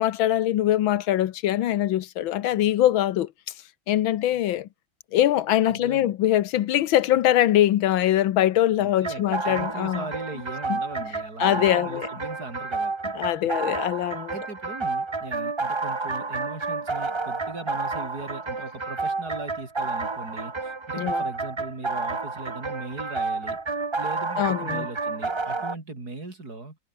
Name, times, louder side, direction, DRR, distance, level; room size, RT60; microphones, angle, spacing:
voice 1, 0.0-3.3 3.9-4.7 5.1-10.1 10.7-10.8 11.4-12.1 13.2-14.3 21.0-21.2 24.4-24.9, left 12 dB, 85° left, 1.7 m, -22 dB
voice 2, 5.6-6.1 8.8-12.9 14.3-23.6 24.0-26.8, right 3 dB, 50° right, 5.4 m, -38 dB
sound 1, 9.0-25.7, right 3 dB, 25° right, 0.6 m, -30 dB
omnidirectional pair, 2.1 m